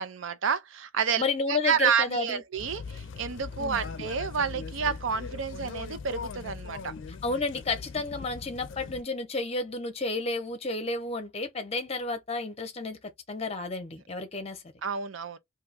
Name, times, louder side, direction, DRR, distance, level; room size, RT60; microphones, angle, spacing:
voice 1, 0.0-6.9 14.8-15.4, right 7 dB, 70° right, 0.5 m, -29 dB
voice 2, 1.2-2.4 3.6-3.8 7.2-13.0 13.3-14.6, left 3 dB, 30° left, 0.7 m, -31 dB
sound 1, 2.6-9.0, left 5 dB, 65° left, 0.5 m, -40 dB
2.7 x 2.3 x 3.9 m
head